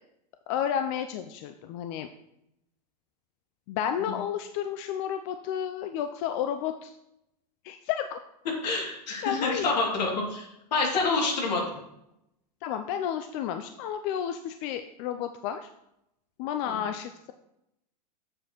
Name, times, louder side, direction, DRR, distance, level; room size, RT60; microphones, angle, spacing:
voice 1, 0.5-2.1 3.7-7.0 7.6-8.2 9.2-9.7 12.6-15.7 16.4-17.3, left 9 dB, 50° left, 8 dB, 0.5 m, -31 dB
voice 2, 8.6-11.8 16.7-16.8, left 3 dB, 80° left, -2 dB, 2.6 m, -28 dB
7.5 x 6.4 x 3.0 m, 0.82 s
hypercardioid pair, 120°, 21 cm